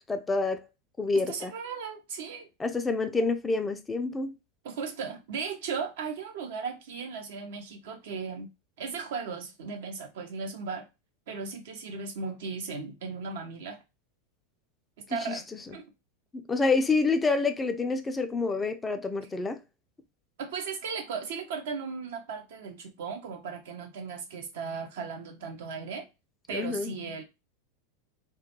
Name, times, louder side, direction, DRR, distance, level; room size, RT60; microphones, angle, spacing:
voice 1, 0.1-0.6 1.0-1.5 2.6-4.3 15.1-15.4 15.7-15.8 16.3-19.6 26.5-26.9, left 3 dB, 15° left, 0.3 m, -28 dB
voice 2, 1.3-2.5 4.6-8.5 8.8-10.9 11.3-13.8 15.0-15.4 15.7-15.9 20.4-26.1 26.5-27.2, right 5 dB, 65° right, 0.7 m, -36 dB
2.2 x 2.2 x 2.9 m
figure-of-eight pair, 90°, 0 cm